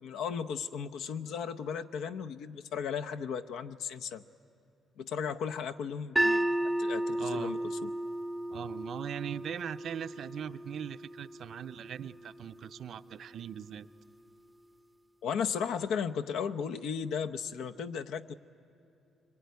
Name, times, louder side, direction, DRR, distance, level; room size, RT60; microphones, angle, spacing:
voice 1, 0.0-4.2 5.0-6.5 6.8-7.9 15.2-18.3, left 7 dB, 80° left, 7 dB, 0.7 m, -35 dB
sound 1, 6.2-12.3, right 1 dB, 5° right, 0.6 m, -33 dB
voice 2, 7.2-7.6 8.5-13.9, right 9 dB, 65° right, 11 dB, 0.6 m, -40 dB
24.0 x 23.5 x 9.5 m, 2.8 s
cardioid pair, 90°, 0 cm